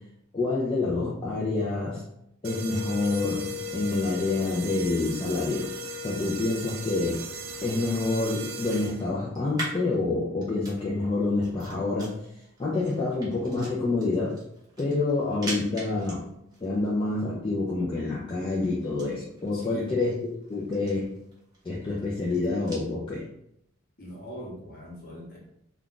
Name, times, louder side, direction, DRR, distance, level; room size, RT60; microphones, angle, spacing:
voice 1, 0.3-2.0 2.4-5.7 6.0-7.2 7.6-12.1 12.6-14.4 14.8-16.3 16.6-20.1 20.5-21.1 21.6-23.2, left 3 dB, 25° left, -6 dB, 0.4 m, -27 dB
sound 1, 2.4-9.2, left 1 dB, 75° right, 0.4 m, -37 dB
sound 2, 7.1-22.9, right 1 dB, 20° right, 0.8 m, -45 dB
voice 2, 19.5-20.0 24.0-25.4, equal, 45° left, -4 dB, 1.0 m, -41 dB
2.4 x 2.3 x 3.7 m, 0.76 s
head